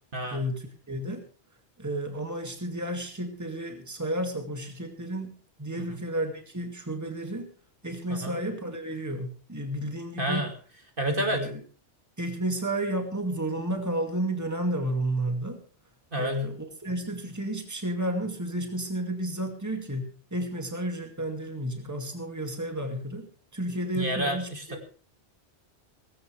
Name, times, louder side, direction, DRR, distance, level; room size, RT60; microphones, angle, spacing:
voice 1, 0.3-1.2 1.8-5.3 5.6-7.5 7.8-10.4 11.1-11.6 12.2-15.6 16.2-23.3 23.5-24.8, right 1 dB, 15° right, 4 dB, 2.3 m, -32 dB
voice 2, 10.2-10.5 11.0-11.5 16.1-16.4 23.9-24.8, right 1 dB, 50° right, 3 dB, 2.5 m, -30 dB
18.5 x 16.0 x 3.4 m, 0.39 s
omnidirectional pair, 1.2 m